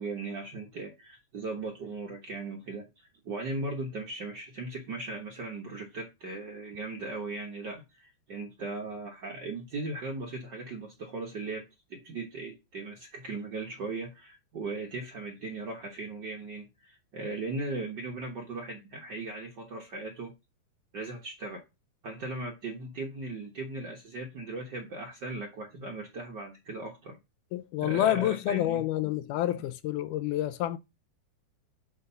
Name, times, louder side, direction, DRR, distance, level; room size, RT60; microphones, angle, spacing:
voice 1, 0.0-20.3 20.9-21.6 22.0-27.2 27.8-28.8, right 3 dB, 85° right, 0.9 m, -38 dB
voice 2, 27.5-30.8, left 13 dB, 80° left, 2.0 m, -28 dB
8.1 x 3.6 x 6.7 m
omnidirectional pair, 3.8 m